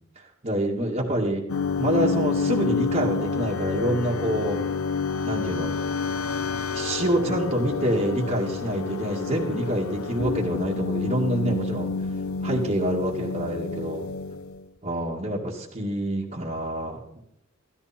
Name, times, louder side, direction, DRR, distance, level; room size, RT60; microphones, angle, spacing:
voice 1, 0.2-1.4 1.8-4.6 5.2-5.8 6.7-11.9 12.4-14.1 14.8-17.2, right 1 dB, 35° right, -6 dB, 2.1 m, -27 dB
sound 1, 1.5-14.7, left 5 dB, 75° left, 0.9 m, -29 dB
15.5 x 13.0 x 4.4 m, 0.77 s
head